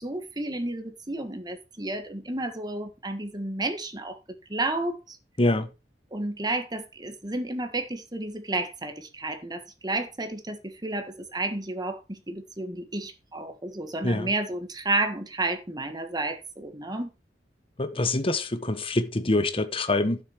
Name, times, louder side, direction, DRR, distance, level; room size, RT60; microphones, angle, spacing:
voice 1, 0.0-4.2 4.5-5.2 6.1-17.1, right 2 dB, 25° right, 1.6 m, -31 dB
voice 2, 5.4-5.7 14.0-14.3 17.8-20.2, left 2 dB, 30° left, 1.2 m, -25 dB
11.5 x 6.9 x 4.6 m
head